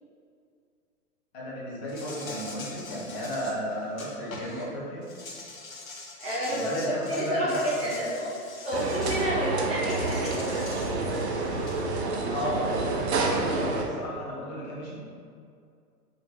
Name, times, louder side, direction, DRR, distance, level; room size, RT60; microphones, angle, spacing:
voice 1, 1.3-5.0 6.5-8.1 12.3-15.0, equal, 25° left, -7 dB, 1.1 m, -33 dB
Insect, 1.9-4.6 5.0-9.3 9.9-11.8, left 3 dB, 60° left, 0.9 m, -43 dB
voice 2, 6.2-6.7 7.1-8.3 8.6-10.4, equal, 15° right, -12 dB, 0.8 m, -29 dB
sound 1, 8.7-13.9, right 3 dB, 45° right, 0.6 m, -28 dB
5.1 x 3.3 x 3.0 m, 2.3 s
figure-of-eight pair, 120°, 47 cm